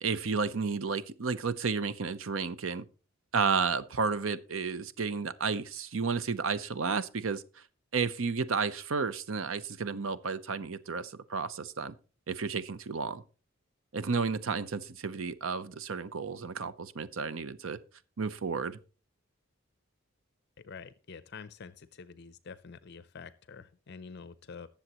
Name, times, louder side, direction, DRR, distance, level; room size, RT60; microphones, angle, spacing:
voice 1, 0.0-2.8 3.3-7.6 7.9-11.9 12.3-13.2 13.9-17.8 18.2-18.8, right 5 dB, 70° right, 0.7 m, -32 dB
voice 2, 20.6-24.7, left 5 dB, 50° left, 0.5 m, -47 dB
20.5 x 7.1 x 3.0 m
head